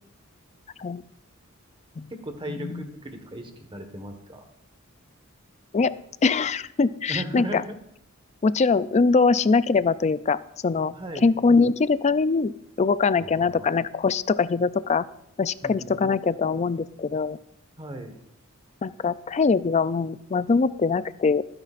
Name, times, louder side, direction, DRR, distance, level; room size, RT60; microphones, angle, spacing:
voice 1, 2.1-4.4 7.1-7.8 10.9-11.3 13.2-13.7 15.6-16.2 17.8-18.1, right 1 dB, 25° right, 6 dB, 1.4 m, -37 dB
voice 2, 6.2-7.6 8.4-10.9 11.2-12.5 12.8-15.0 15.4-17.4 18.8-21.4, left 4 dB, 30° left, 15 dB, 0.4 m, -22 dB
23.5 x 9.8 x 2.5 m, 0.73 s
head